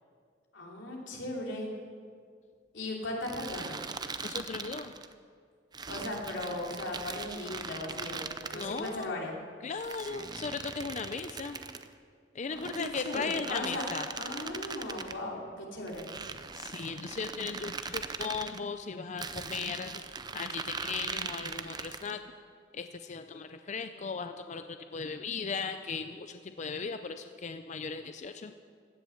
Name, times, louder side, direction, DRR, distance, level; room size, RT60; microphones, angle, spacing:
voice 1, 0.5-1.7 2.7-3.8 5.9-8.2 8.5-9.3 12.5-13.8 14.1-16.1, left 1 dB, 80° left, -2 dB, 3.0 m, -37 dB
sound 1, 3.2-5.1 5.7-9.1 9.8-11.9 12.5-15.2 15.9-18.6 19.2-22.2, right 4 dB, 20° right, 0.5 m, -40 dB
voice 2, 4.2-4.9 8.5-9.2 9.6-11.6 12.3-14.1 16.5-20.0 20.3-22.2 22.7-28.5, left 5 dB, 40° left, 8 dB, 0.5 m, -37 dB
16.0 x 10.5 x 7.0 m, 2.1 s
head